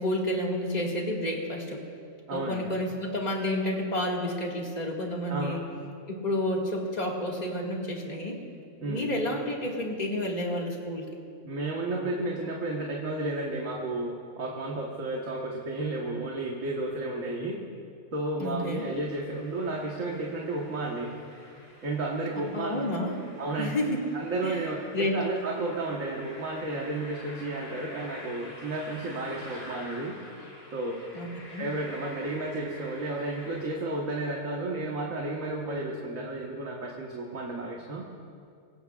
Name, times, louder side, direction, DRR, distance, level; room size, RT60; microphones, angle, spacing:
voice 1, 0.0-1.8 2.3-5.6 6.1-8.4 8.8-11.1 18.4-18.9 22.5-23.2 23.6-24.0 24.4-24.6 24.9-25.2 31.1-31.7, left 1 dB, 30° left, -2 dB, 2.1 m, -30 dB
voice 2, 2.3-2.7 5.3-5.6 8.8-9.2 11.4-17.6 18.1-21.1 21.8-22.8 23.4-23.8 24.1-30.1 30.7-31.0 31.6-38.0, right 2 dB, 80° right, -2 dB, 1.8 m, -32 dB
sound 1, 18.6-33.6, left 1 dB, 50° left, 3.1 m, -48 dB
25.0 x 19.0 x 2.4 m, 2.3 s
omnidirectional pair, 1.3 m